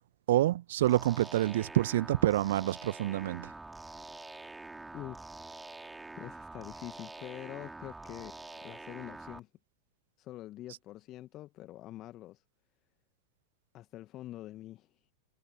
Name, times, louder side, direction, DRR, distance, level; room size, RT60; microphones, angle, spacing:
voice 1, 0.3-3.5, right 14 dB, 55° right, 1.3 m, -27 dB
sound 1, 0.8-9.4, right 2 dB, 5° right, 5.0 m, -46 dB
voice 2, 4.9-5.3 6.2-8.3 8.6-9.5 10.2-12.4 13.7-14.9, left 15 dB, 35° left, 1.6 m, -45 dB
figure-of-eight pair, 90°, 0 cm